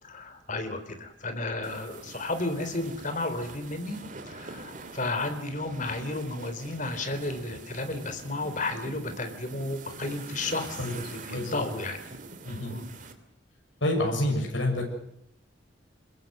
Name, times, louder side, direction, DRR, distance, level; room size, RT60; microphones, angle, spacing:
voice 1, 0.0-4.0 4.3-12.0 12.6-12.9, left 2 dB, 45° left, 8 dB, 3.8 m, -33 dB
sound 1, 1.6-13.1, right 3 dB, 45° right, 2.8 m, -44 dB
voice 2, 11.3-11.6 12.5-12.7 13.8-14.9, left 1 dB, 80° left, 1 dB, 7.1 m, -28 dB
27.0 x 21.0 x 7.9 m, 0.77 s
head